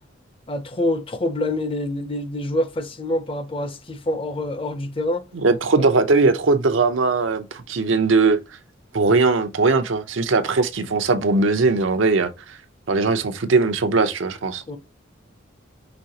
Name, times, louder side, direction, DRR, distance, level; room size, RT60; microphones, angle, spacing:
voice 1, 0.5-5.2 5.8-5.9 14.7-14.8, left 1 dB, 30° left, 0.5 m, -26 dB
voice 2, 5.3-8.4 8.9-12.6 12.9-14.6, right 3 dB, 80° right, 0.7 m, -19 dB
5.2 x 3.2 x 2.8 m
head